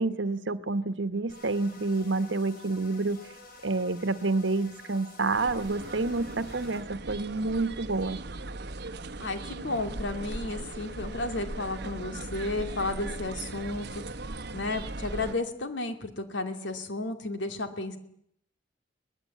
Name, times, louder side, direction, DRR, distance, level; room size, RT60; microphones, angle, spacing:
voice 1, 0.0-3.2 3.6-8.2, right 3 dB, 90° right, 13 dB, 1.2 m, -28 dB
sound 1, 1.3-6.8, left 2 dB, 55° left, 5.2 m, -50 dB
sound 2, 5.3-15.3, right 2 dB, 65° right, 1.2 m, -39 dB
voice 2, 9.2-14.0 14.5-18.0, left 2 dB, 75° left, 7 dB, 2.7 m, -33 dB
23.5 x 19.5 x 8.6 m, 0.72 s
head